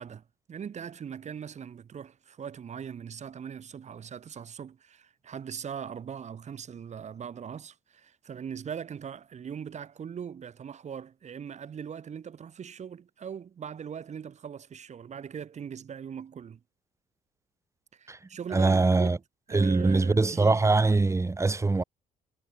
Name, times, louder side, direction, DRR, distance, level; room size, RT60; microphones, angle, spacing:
voice 1, 0.0-16.6 17.9-19.2 19.5-20.6, right 7 dB, 45° right, 7.8 m, -40 dB
voice 2, 18.5-19.2 19.5-21.8, right 3 dB, 15° right, 2.2 m, -23 dB
cardioid pair, 110°, 17 cm